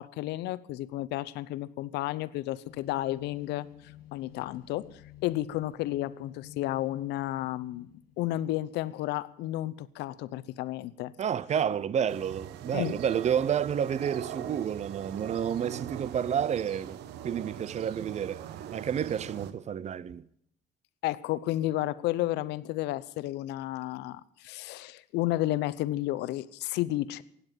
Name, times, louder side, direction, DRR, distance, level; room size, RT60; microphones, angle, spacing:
voice 1, 0.0-7.9 8.2-11.1 12.7-13.0 21.0-27.2, left 15 dB, 85° left, 0.7 m, -32 dB
sound 1, 2.7-10.2, left 13 dB, 60° left, 1.8 m, -53 dB
voice 2, 11.2-17.0 17.2-20.2, right 8 dB, 40° right, 0.7 m, -30 dB
sound 2, 12.1-19.5, right 10 dB, 80° right, 1.2 m, -41 dB
16.0 x 9.6 x 8.9 m
cardioid pair, 110°, 17 cm